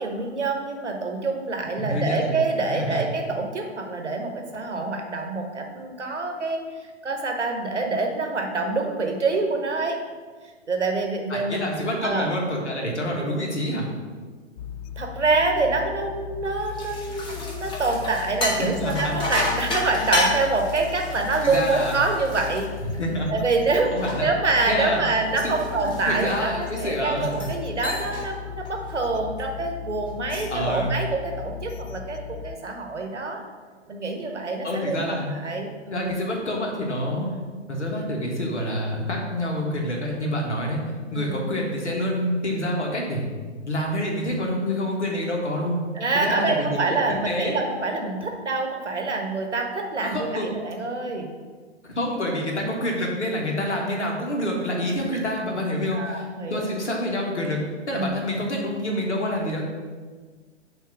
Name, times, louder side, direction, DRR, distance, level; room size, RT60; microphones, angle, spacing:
voice 1, 0.0-6.6 7.0-10.0 10.7-11.7 12.0-12.3 15.0-22.7 23.3-23.9 24.2-33.4 33.9-36.1 37.2-37.4 41.1-41.5 46.0-51.3 52.6-52.8 55.1-55.2 55.9-56.7 57.9-58.1, right 3 dB, 85° right, 3 dB, 1.1 m, -26 dB
voice 2, 1.8-2.3 2.6-3.0 11.3-13.9 18.5-19.2 21.4-22.0 22.9-23.3 23.9-24.3 24.7-25.0 25.4-25.5 25.8-27.5 30.5-30.9 34.6-35.3 35.9-37.2 37.7-40.8 41.1-43.3 43.6-45.8 46.1-47.6 50.0-50.5 51.8-56.2 56.5-59.7, left 1 dB, 80° left, 0 dB, 1.6 m, -27 dB
sound 1, 14.6-32.6, left 9 dB, 40° left, 0.5 m, -37 dB
sound 2, 16.5-23.3 23.7-26.8 27.3-27.6 27.8-28.3 28.7-28.9 30.1-30.6, left 1 dB, 15° left, 0.9 m, -31 dB
7.1 x 3.0 x 5.9 m, 1.5 s
figure-of-eight pair, 115°, 34 cm